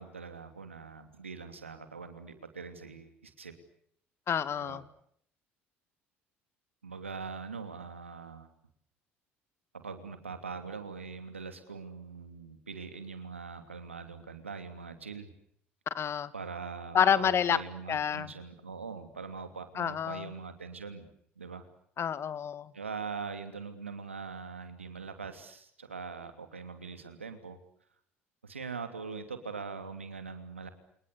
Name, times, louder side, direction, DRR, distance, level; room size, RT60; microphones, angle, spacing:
voice 1, 0.0-3.5 4.6-4.8 6.8-8.5 9.7-15.3 16.3-21.1 21.4-21.7 22.7-27.6 28.4-30.7, right 5 dB, 90° right, 8 dB, 2.9 m, -42 dB
voice 2, 4.3-4.8 15.9-16.3 16.9-17.6 17.9-18.3 19.8-20.3 22.0-22.7, left 8 dB, 40° left, 14 dB, 2.1 m, -28 dB
29.5 x 28.0 x 7.0 m, 0.70 s
figure-of-eight pair, 60°, 7 cm